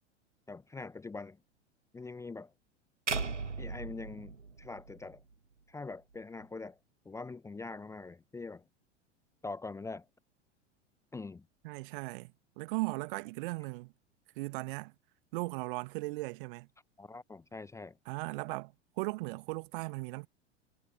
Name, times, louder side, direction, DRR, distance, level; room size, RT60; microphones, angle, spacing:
voice 1, 0.5-1.4 1.9-2.5 3.6-5.2 5.7-6.8 7.0-8.6 9.4-10.1 11.1-11.4 17.0-18.0, left 3 dB, 10° left, 0.9 m, -43 dB
sound 1, 3.1-5.3, right 4 dB, 80° right, 1.8 m, -37 dB
voice 2, 11.6-12.3 12.6-13.9 14.3-14.9 15.3-16.7 18.1-20.3, right 24 dB, 45° right, 1.6 m, -37 dB
figure-of-eight pair, 85°, 35 cm